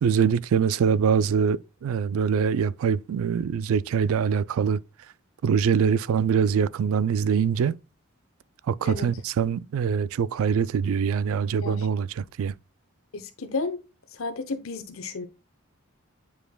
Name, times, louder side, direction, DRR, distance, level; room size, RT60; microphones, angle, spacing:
voice 1, 0.0-4.8 5.4-7.8 8.7-12.5, right 6 dB, 75° right, 0.3 m, -24 dB
voice 2, 13.1-13.8 14.1-15.3, left 3 dB, 75° left, 0.9 m, -32 dB
8.9 x 4.9 x 2.2 m
head